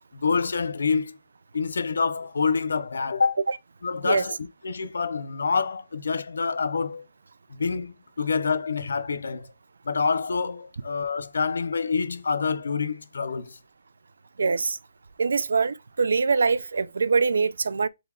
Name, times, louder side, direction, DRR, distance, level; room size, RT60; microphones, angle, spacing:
voice 1, 0.1-1.2 1.5-3.4 3.8-7.0 7.6-9.5 9.9-13.6, left 5 dB, 80° left, 0.5 m, -27 dB
voice 2, 14.4-14.8 15.2-17.9, right 4 dB, 80° right, 0.3 m, -23 dB
3.8 x 2.3 x 4.2 m
hypercardioid pair, 175°, 0 cm